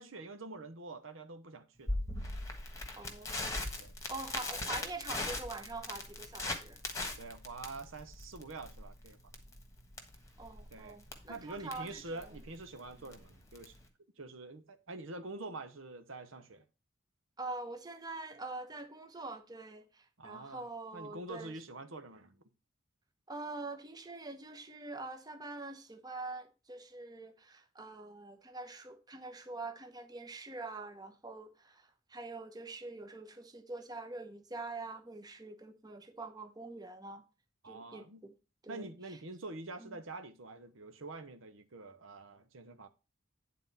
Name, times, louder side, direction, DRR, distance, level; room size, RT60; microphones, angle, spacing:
voice 1, 0.0-2.0 3.8-3.9 7.2-9.2 10.7-11.0 11.3-13.7 14.2-16.6 20.2-20.7 20.9-22.4 37.6-38.2 38.7-42.9, right 2 dB, 80° right, 1.0 m, -46 dB
Crackle, 1.9-13.9, left 2 dB, 15° left, 1.4 m, -40 dB
voice 2, 3.0-3.7 4.1-6.8 10.4-12.3 17.4-21.5 23.3-37.2 37.6-38.3 38.6-39.2 39.8-39.9, right 3 dB, 20° right, 1.0 m, -45 dB
9.6 x 4.1 x 5.5 m
head